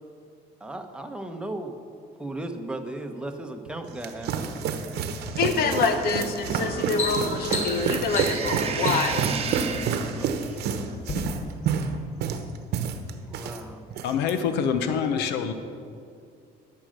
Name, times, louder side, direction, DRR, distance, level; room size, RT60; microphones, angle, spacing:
voice 1, 0.6-1.8 2.2-4.9 5.6-5.8 10.2-10.8 13.3-13.9, right 1 dB, 5° right, 4 dB, 1.1 m, -36 dB
sound 1, 3.7-13.6 13.9-14.3, right 6 dB, 75° right, 0.9 m, -29 dB
voice 2, 5.4-9.3, left 5 dB, 65° left, 8 dB, 1.1 m, -26 dB
sound 2, 6.0-6.3 6.6-9.3 10.1-10.6 11.0-11.1, left 2 dB, 45° left, 2.4 m, -33 dB
sound 3, 6.1-10.4, right 6 dB, 35° right, 1.0 m, -34 dB
voice 3, 14.0-15.5, left 7 dB, 85° left, 9 dB, 0.8 m, -25 dB
12.5 x 6.5 x 6.5 m, 2.4 s
cardioid pair, 110°, 17 cm